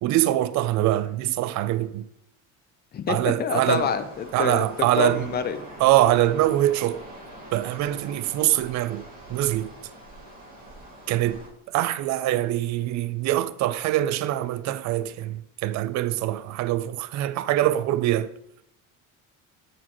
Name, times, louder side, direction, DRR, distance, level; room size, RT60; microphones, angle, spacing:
voice 1, 0.0-2.1 3.1-3.9 4.3-5.3 5.8-7.0 7.5-9.0 9.3-9.7 11.1-11.4 11.7-18.3, right 14 dB, 55° right, 0.4 m, -23 dB
voice 2, 2.9-4.7 4.9-5.7, left 7 dB, 30° left, 0.5 m, -27 dB
sound 1, 3.7-11.5, right 1 dB, 25° right, 2.0 m, -44 dB
8.4 x 4.2 x 3.0 m
cardioid pair, 125°, 34 cm